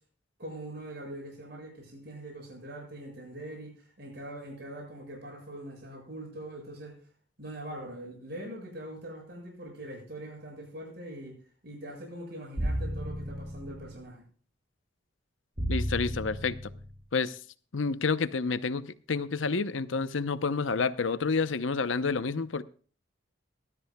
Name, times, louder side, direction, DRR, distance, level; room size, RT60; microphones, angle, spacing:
voice 1, 0.4-7.0 7.4-14.2, right 1 dB, 55° right, 0 dB, 7.4 m, -42 dB
sound 1, 12.6-14.0 15.6-17.0, equal, 25° right, 3.7 m, -33 dB
voice 2, 15.7-16.6 17.1-17.4 17.7-22.6, left 4 dB, 85° left, 13 dB, 0.8 m, -29 dB
19.0 x 13.5 x 2.3 m, 0.41 s
head